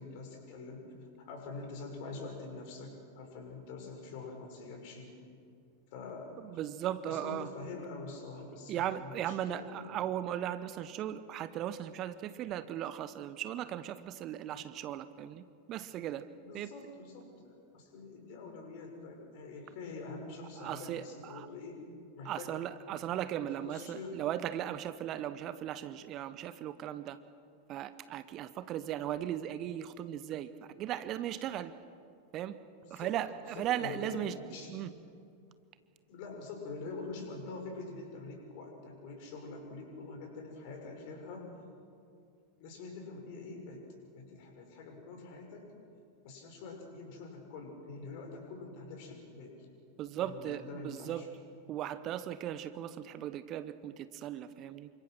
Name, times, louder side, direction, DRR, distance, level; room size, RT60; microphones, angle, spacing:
voice 1, 0.0-5.1 5.9-6.6 7.0-9.9 16.4-21.8 22.1-22.5 23.6-24.2 32.8-33.2 33.6-34.7 36.1-41.5 42.6-43.8 44.1-45.7 46.2-49.6 50.1-51.3, left 3 dB, 45° left, 3 dB, 6.4 m, -45 dB
voice 2, 6.4-7.5 8.7-16.3 16.5-16.7 20.6-21.5 22.2-27.2 27.7-30.5 30.8-31.7 32.3-32.6 32.9-34.4 34.7-34.9 50.0-51.3 51.7-54.9, right 11 dB, 35° right, 13 dB, 1.0 m, -37 dB
28.0 x 25.5 x 6.3 m, 2.4 s
figure-of-eight pair, 90°, 0 cm